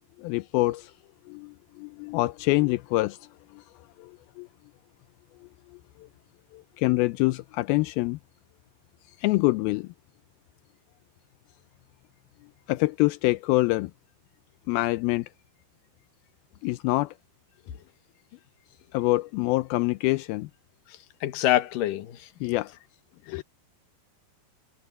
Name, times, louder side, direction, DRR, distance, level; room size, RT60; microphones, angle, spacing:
voice 1, 0.2-0.9 1.3-3.2 3.5-3.6 4.0-4.5 6.0-6.1 6.5-8.2 9.2-9.9 12.7-13.9 14.7-15.3 16.6-17.1 18.9-20.5 22.4-22.7 23.3-23.4, left 21 dB, 85° left, 2.2 m, -25 dB
voice 2, 21.2-22.3 23.3-23.4, left 14 dB, 65° left, 2.4 m, -26 dB
omnidirectional pair, 4.8 m